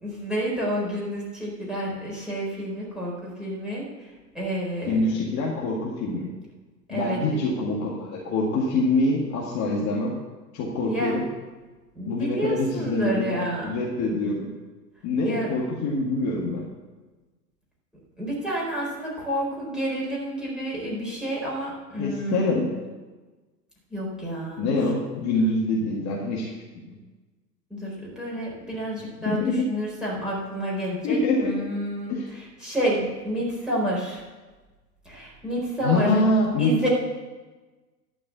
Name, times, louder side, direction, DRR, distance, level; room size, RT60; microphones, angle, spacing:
voice 1, 0.0-4.1 4.3-5.3 6.9-7.2 10.8-11.2 11.9-13.7 15.2-15.5 18.2-22.6 23.9-24.8 27.7-34.2 35.0-36.2 36.6-36.9, right 1 dB, ahead, -6 dB, 4.4 m, -29 dB
voice 2, 4.9-6.3 6.9-10.2 10.5-11.2 12.1-13.4 13.6-14.5 15.0-16.7 22.0-22.7 24.6-26.5 26.9-27.0 29.3-29.7 31.0-31.5 32.1-32.3 35.8-36.7, left 2 dB, 35° left, -4 dB, 2.1 m, -25 dB
12.0 x 5.3 x 8.3 m, 1.3 s
figure-of-eight pair, 100°, 50 cm